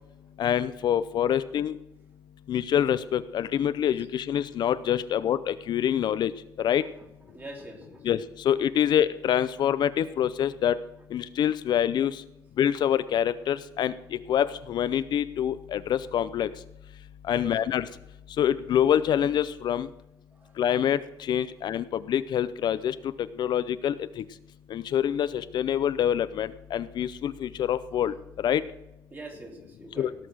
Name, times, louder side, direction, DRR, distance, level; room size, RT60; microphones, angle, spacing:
voice 1, 0.4-1.7 2.5-6.3 6.6-6.8 8.0-8.2 8.4-10.7 11.1-12.2 12.6-13.9 14.3-16.5 17.3-17.9 18.4-19.9 20.6-21.0 21.3-22.9 23.4-23.9 24.7-28.1 28.4-28.6 30.0-30.1, left 10 dB, 60° left, 14 dB, 0.6 m, -25 dB
voice 2, 7.3-8.1 17.3-17.7 20.3-20.5 29.1-30.1, right 2 dB, 20° right, 3 dB, 2.7 m, -44 dB
17.5 x 6.0 x 6.3 m, 0.89 s
cardioid pair, 130°, 8 cm